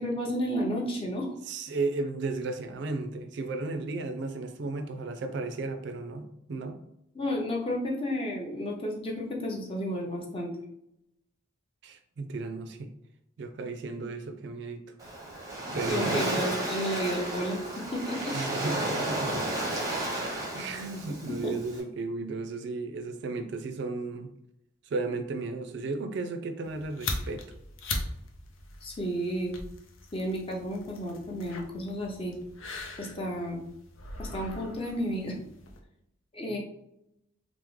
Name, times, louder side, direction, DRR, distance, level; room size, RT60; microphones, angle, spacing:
voice 1, 0.0-1.3 7.1-10.5 15.9-18.3 21.4-21.5 28.8-29.6 30.1-32.4 33.0-33.6 34.2-35.4 36.3-36.6, equal, 30° left, -1 dB, 0.6 m, -32 dB
voice 2, 1.5-6.8 11.8-12.9 13.4-14.9 15.7-16.4 18.3-19.3 20.4-24.3 24.9-27.5, right 3 dB, 60° right, 7 dB, 0.3 m, -34 dB
Waves surf, 15.0-21.8, right 1 dB, 20° right, 0.6 m, -32 dB
sound 1, 26.6-35.8, left 2 dB, 85° left, 0.5 m, -40 dB
3.4 x 2.0 x 3.1 m, 0.80 s
head